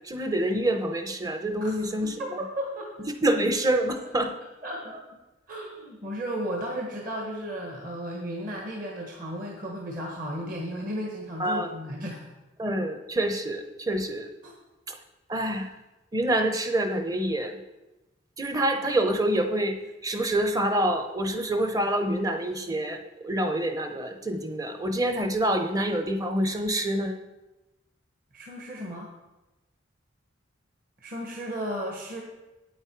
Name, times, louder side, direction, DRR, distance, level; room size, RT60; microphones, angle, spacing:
voice 1, 0.1-2.4 3.2-4.4 11.4-11.7 12.6-14.3 15.3-15.7 16.1-17.6 18.4-27.2, right 1 dB, 20° right, 6 dB, 0.7 m, -27 dB
voice 2, 2.0-2.9 4.6-5.0 5.5-12.2 14.4-14.6 28.3-29.1 31.0-32.2, equal, 45° right, 0 dB, 1.3 m, -34 dB
8.8 x 8.6 x 4.6 m, 1.0 s
head